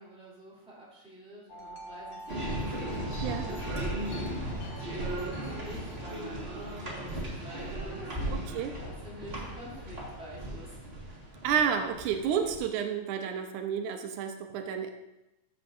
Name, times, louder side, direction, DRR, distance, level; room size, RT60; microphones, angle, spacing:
voice 1, 0.0-2.7 3.0-8.4 8.8-10.8, right 1 dB, ahead, -7 dB, 2.8 m, -48 dB
Wind chime, 1.5-8.0, equal, 60° left, 1.2 m, -48 dB
sound 1, 2.3-12.6, right 1 dB, 25° right, 1.4 m, -36 dB
voice 2, 8.3-8.7 11.4-14.9, right 7 dB, 90° right, 6 dB, 2.2 m, -30 dB
14.0 x 6.7 x 2.6 m, 0.93 s
omnidirectional pair, 3.4 m